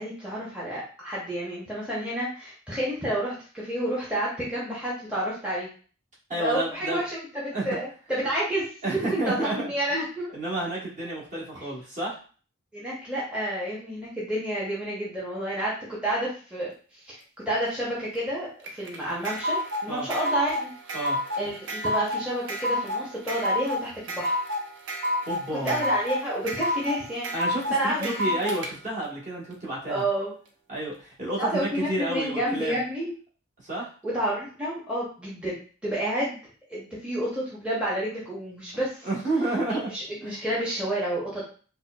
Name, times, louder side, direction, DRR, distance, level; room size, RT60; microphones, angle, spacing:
voice 1, 0.0-5.7 6.4-7.0 7.3-10.3 12.7-17.2 17.5-20.9 21.4-24.3 25.6-27.3 27.7-28.4 29.9-30.3 31.4-33.1 34.0-36.4 36.7-39.1 39.7-41.4, right 1 dB, 5° right, -7 dB, 0.8 m, -30 dB
voice 2, 6.3-7.0 7.5-7.6 8.8-9.7 10.3-12.2 19.9-20.1 20.9-21.2 25.3-25.8 27.3-30.0 30.7-32.7 33.6-33.9 39.0-39.9 40.2-40.4, right 2 dB, 40° right, -6 dB, 1.2 m, -30 dB
sound 1, 18.6-28.7, left 1 dB, 65° right, 0.6 m, -29 dB
4.1 x 2.2 x 2.3 m, 0.40 s
head